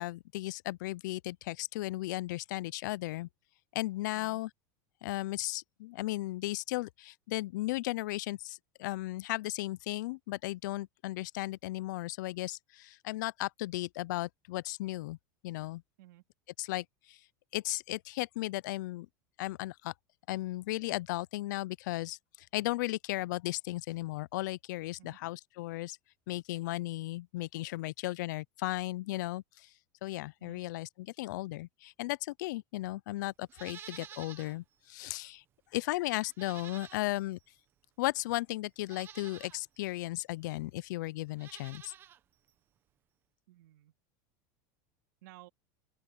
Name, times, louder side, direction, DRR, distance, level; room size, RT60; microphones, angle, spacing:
voice 1, 0.0-3.3 3.7-4.5 5.0-15.2 15.4-15.8 16.6-17.2 17.5-19.1 19.4-19.9 20.3-26.0 26.3-29.7 30.0-35.4 35.7-37.4 38.0-41.9, left 19 dB, 70° left, 0.4 m, -36 dB
Livestock farm animals working animals, 33.5-34.6 35.0-35.1 36.3-37.3 38.2-38.3 38.8-39.6 41.3-42.2 42.5-42.6, right 10 dB, 20° right, 0.9 m, -50 dB
voice 2, 43.5-43.9 45.2-45.5, right 17 dB, 65° right, 2.5 m, -55 dB
open air
supercardioid pair, 175°, 10 cm